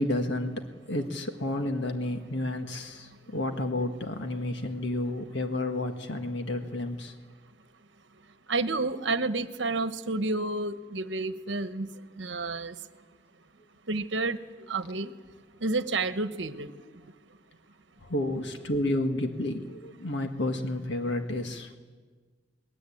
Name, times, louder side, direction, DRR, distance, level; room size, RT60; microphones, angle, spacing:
voice 1, 0.0-7.2 18.0-21.8, left 1 dB, 70° left, 5 dB, 1.8 m, -31 dB
voice 2, 8.5-11.9 12.2-12.7 13.9-14.4 14.7-15.1 15.6-16.7, right 3 dB, 70° right, 10 dB, 1.2 m, -30 dB
26.0 x 21.0 x 8.7 m, 1.5 s
head